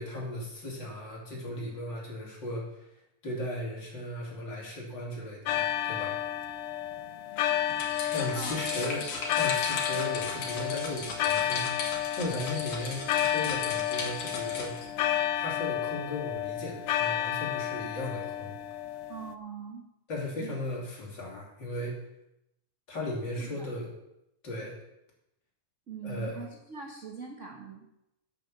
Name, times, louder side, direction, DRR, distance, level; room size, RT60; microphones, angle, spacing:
voice 1, 0.0-2.9 3.2-6.2 8.1-9.1 9.4-14.8 15.4-18.6 20.1-22.0 22.9-23.9 24.4-24.8 26.0-26.3, left 1 dB, 40° left, -3 dB, 3.5 m, -36 dB
sound 1, 5.5-19.3, left 11 dB, 90° left, 1.2 m, -31 dB
sound 2, 7.7-14.9, left 3 dB, 65° left, 2.9 m, -37 dB
voice 2, 8.3-9.0 19.1-19.8 20.4-20.5 23.4-23.7 25.9-27.9, right 5 dB, 55° right, 1 dB, 0.8 m, -42 dB
9.0 x 8.4 x 6.9 m, 0.84 s
omnidirectional pair, 3.3 m